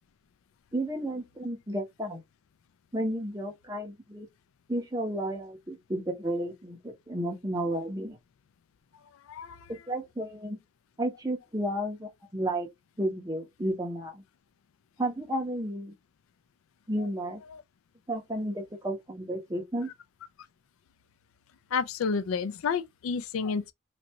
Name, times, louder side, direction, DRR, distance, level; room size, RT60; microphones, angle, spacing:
voice 1, 0.7-2.2 2.9-4.3 4.7-8.2 9.7-10.6 11.0-12.7 13.0-14.2 15.0-15.9 16.9-17.4 18.1-19.9, right 1 dB, 15° right, 0.9 m, -32 dB
voice 2, 9.1-9.7 17.0-17.1 17.5-17.6 21.7-23.7, left 5 dB, 85° left, 0.4 m, -31 dB
3.2 x 2.5 x 2.8 m
head